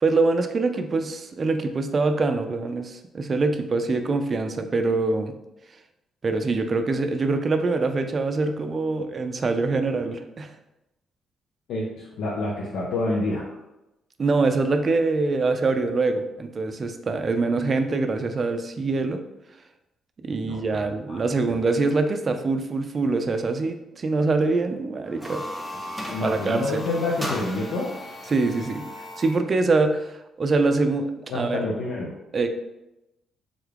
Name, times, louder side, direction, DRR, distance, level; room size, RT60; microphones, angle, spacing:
voice 1, 0.0-5.3 6.2-10.5 14.2-19.2 20.2-25.4 26.2-26.8 28.3-28.9 29.2-31.6 32.3-32.5, right 3 dB, 40° right, 7 dB, 0.3 m, -24 dB
voice 2, 11.7-13.6 20.4-21.2 26.1-27.9 31.3-32.1, left 2 dB, 80° left, -4 dB, 0.5 m, -28 dB
sound 1, 25.0-29.5, left 1 dB, 10° left, 0.8 m, -36 dB
3.6 x 2.3 x 3.3 m, 0.92 s
cardioid pair, 90°, 0 cm